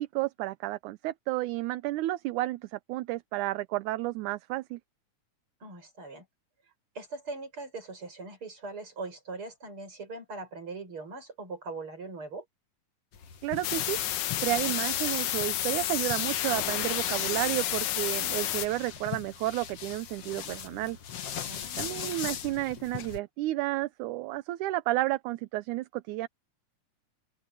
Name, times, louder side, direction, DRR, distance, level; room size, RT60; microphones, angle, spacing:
voice 1, 0.0-4.8 13.4-14.0 14.4-21.0 21.8-26.3, right 17 dB, 80° right, 2.1 m, -31 dB
voice 2, 5.6-6.3 6.9-12.5 21.5-22.1, right 3 dB, 40° right, 8.0 m, -41 dB
sound 1, 13.1-23.2, left 9 dB, 55° left, 2.2 m, -39 dB
sound 2, 13.6-18.7, left 13 dB, 75° left, 2.4 m, -30 dB
open air
omnidirectional pair, 3.5 m